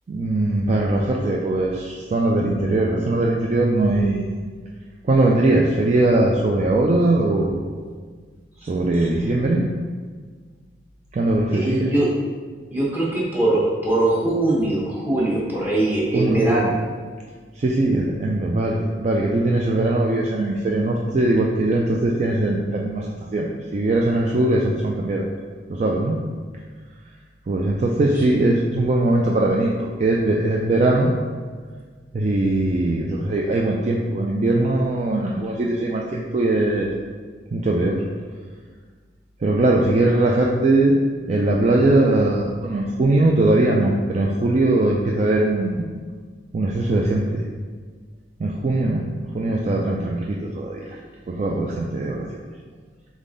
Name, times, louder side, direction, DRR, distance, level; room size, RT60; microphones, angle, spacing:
voice 1, 0.1-4.4 5.0-7.8 8.7-9.7 11.1-11.9 16.1-16.7 17.6-25.3 25.7-26.2 27.5-31.1 32.1-36.9 37.5-38.0 39.4-41.0 41.3-45.9 46.5-47.5 48.4-49.0 49.3-51.0 51.3-52.3, right 2 dB, 40° right, -2 dB, 0.3 m, -20 dB
voice 2, 11.5-12.1 12.7-16.8, right 2 dB, 10° right, -6 dB, 1.0 m, -21 dB
3.8 x 3.6 x 3.8 m, 1.6 s
head